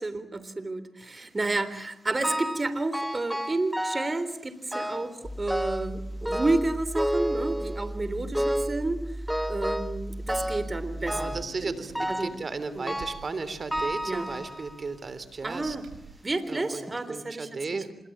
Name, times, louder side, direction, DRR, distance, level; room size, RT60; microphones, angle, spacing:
voice 1, 0.0-9.0 9.5-11.4 11.6-12.4 12.7-13.0 14.1-14.3 15.4-15.9 16.2-17.8, right 2 dB, 35° right, 13 dB, 3.7 m, -31 dB
sound 1, 2.2-2.7 2.9-4.2 4.7-5.1 5.5-5.9 6.3-7.9 8.3-8.8 9.3-10.0 10.3-10.7 11.1-11.5 11.9-12.4 12.9-13.3 13.7-14.8 15.4-15.5 16.3-16.4 16.9-17.0, equal, 5° right, 1.9 m, -31 dB
sound 2, 5.2-11.5, right 1 dB, 15° left, 5.0 m, -37 dB
Growling / Hiss, 10.3-16.0, right 5 dB, 90° right, 5.7 m, -49 dB
voice 2, 11.0-15.8 16.5-17.9, right 4 dB, 55° right, 13 dB, 3.5 m, -35 dB
26.5 x 23.5 x 8.8 m, 0.80 s
supercardioid pair, 45°, 0 cm